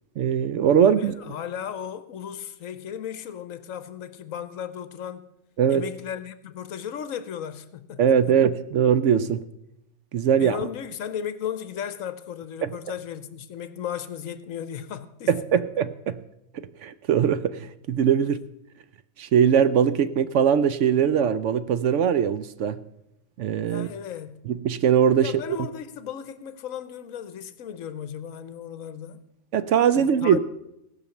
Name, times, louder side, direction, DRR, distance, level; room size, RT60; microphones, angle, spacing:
voice 1, 0.2-1.1 5.6-5.8 8.0-9.4 10.1-10.6 12.6-12.7 15.3-16.2 16.8-18.4 19.2-22.8 23.4-23.9 24.5-25.4 29.5-30.4, right 8 dB, 65° right, 0.8 m, -21 dB
voice 2, 0.8-5.3 5.7-8.2 10.3-15.6 23.7-24.4 25.2-29.2 29.9-30.4, left 9 dB, 70° left, 1.2 m, -35 dB
17.5 x 5.8 x 7.0 m
omnidirectional pair, 1.5 m